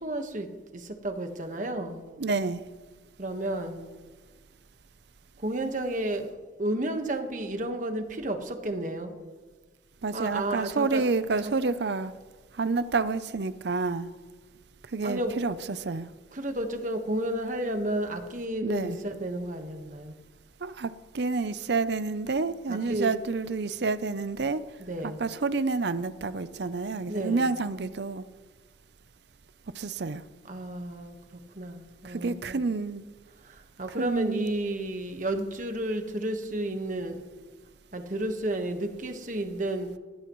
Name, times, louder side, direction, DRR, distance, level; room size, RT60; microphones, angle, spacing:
voice 1, 0.0-2.0 3.2-3.9 5.4-9.2 10.1-11.0 11.4-11.5 15.0-15.5 16.3-20.1 22.7-23.1 24.8-25.2 27.1-27.5 30.5-32.6 33.4-37.2 37.9-40.0, right 1 dB, 40° right, 6 dB, 1.4 m, -32 dB
voice 2, 2.2-2.6 10.0-12.1 12.5-14.1 14.9-16.1 18.6-19.0 20.6-24.6 25.0-28.2 29.8-30.2 32.0-33.0 34.0-34.5, right 4 dB, 60° right, 14 dB, 0.6 m, -29 dB
20.0 x 17.5 x 3.1 m, 1.4 s
head